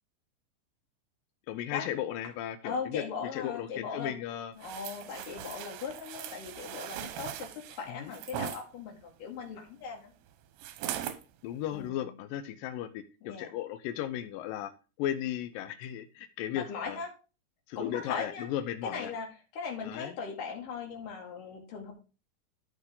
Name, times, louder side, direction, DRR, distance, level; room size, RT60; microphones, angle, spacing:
voice 1, 1.5-3.0 3.3-4.5 7.9-8.1 11.4-14.7 15.0-17.0 17.7-19.1 19.8-20.1, left 11 dB, 80° left, 8 dB, 2.1 m, -36 dB
voice 2, 2.6-4.2 4.6-10.1 11.7-12.0 13.2-13.6 16.5-17.1 17.8-18.5 18.8-19.3 19.5-21.9, left 5 dB, 60° left, 1 dB, 3.7 m, -39 dB
sound 1, 4.6-8.6 10.6-11.2 11.8-11.9, right 11 dB, 90° right, 3.0 m, -40 dB
13.0 x 5.8 x 3.8 m, 0.33 s
omnidirectional pair, 4.6 m